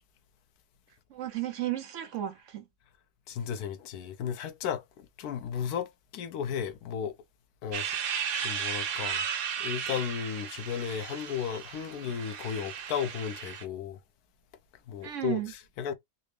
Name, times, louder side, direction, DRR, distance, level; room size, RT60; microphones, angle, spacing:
voice 1, 1.1-2.6 15.0-15.5, right 13 dB, 65° right, 0.8 m, -34 dB
voice 2, 3.3-7.1 7.6-7.9 8.4-9.3 9.6-14.0 14.9-15.9, left 8 dB, 75° left, 1.1 m, -34 dB
sound 1, 7.7-13.6, right 7 dB, 90° right, 1.3 m, -35 dB
4.1 x 2.0 x 3.2 m
omnidirectional pair, 1.7 m